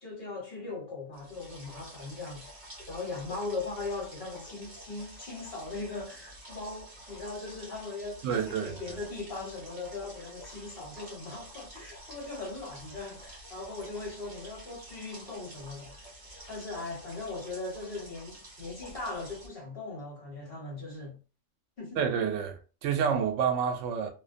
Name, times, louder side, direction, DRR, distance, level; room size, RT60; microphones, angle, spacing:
voice 1, 0.0-16.1 16.5-21.2 21.8-22.0, left 3 dB, 50° left, 1.2 m, -39 dB
sound 1, 1.1-19.5, equal, 40° right, 0.9 m, -49 dB
voice 2, 8.2-8.7 22.0-24.1, right 7 dB, 80° right, 0.9 m, -28 dB
2.5 x 2.1 x 2.5 m
omnidirectional pair, 1.3 m